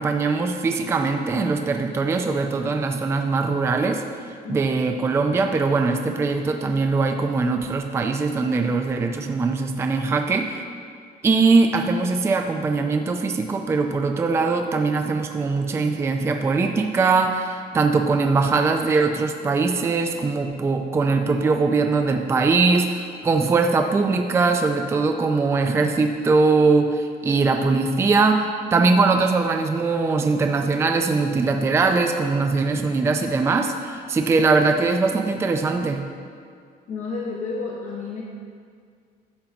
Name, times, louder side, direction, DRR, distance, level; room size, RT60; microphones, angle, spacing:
voice 1, 0.0-10.6 11.2-36.1, right 4 dB, 15° right, 4 dB, 0.4 m, -21 dB
voice 2, 36.9-38.2, left 4 dB, 45° left, -3 dB, 1.1 m, -30 dB
11.5 x 3.9 x 7.2 m, 2.2 s
cardioid pair, 160°, 17 cm